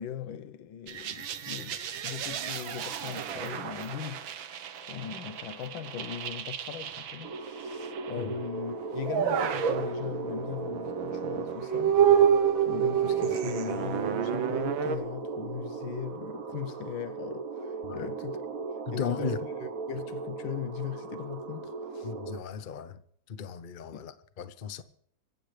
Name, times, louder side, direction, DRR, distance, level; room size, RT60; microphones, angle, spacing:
voice 1, 0.0-4.3 4.8-12.0 12.6-18.4 18.9-22.1 23.9-24.1, left 9 dB, 80° left, 1.6 m, -39 dB
sound 1, 0.9-8.2 8.9-15.0, right 8 dB, 90° right, 1.8 m, -29 dB
sound 2, 7.2-22.4, right 3 dB, 50° right, 1.5 m, -38 dB
voice 2, 18.9-19.4 22.0-23.0 23.3-24.8, left 7 dB, 45° left, 0.6 m, -36 dB
25.5 x 15.0 x 3.3 m
omnidirectional pair, 2.1 m